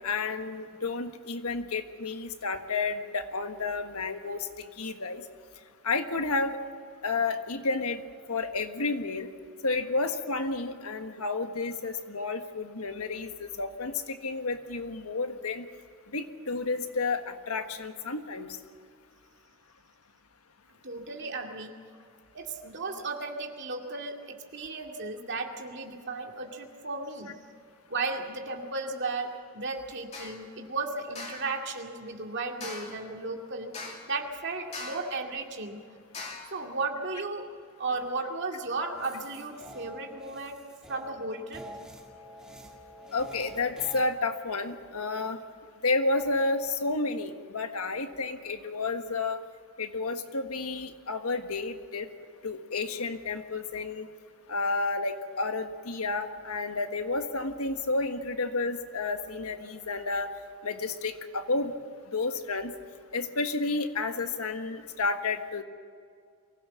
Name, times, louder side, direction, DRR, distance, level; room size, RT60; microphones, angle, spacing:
voice 1, 0.0-4.5 4.8-5.2 5.8-6.6 7.0-8.0 8.3-9.3 9.6-15.7 16.1-18.5 43.1-45.4 45.8-49.4 49.8-52.1 52.4-54.1 54.5-60.3 60.6-61.7 62.1-62.7 63.1-65.6, left 3 dB, 85° left, 7 dB, 1.5 m, -31 dB
voice 2, 20.8-21.7 22.3-27.4 27.9-33.7 34.1-35.8 36.5-37.5 37.8-40.6 40.9-41.6, right 3 dB, 55° right, 2 dB, 2.3 m, -35 dB
sound 1, 30.1-30.4 31.2-31.5 32.6-33.1 33.7-34.2 34.7-35.2 36.1-36.6, left 3 dB, 30° left, 2.6 m, -41 dB
sound 2, 38.9-44.0, equal, 5° right, 2.2 m, -47 dB
24.0 x 16.5 x 7.3 m, 2.2 s
head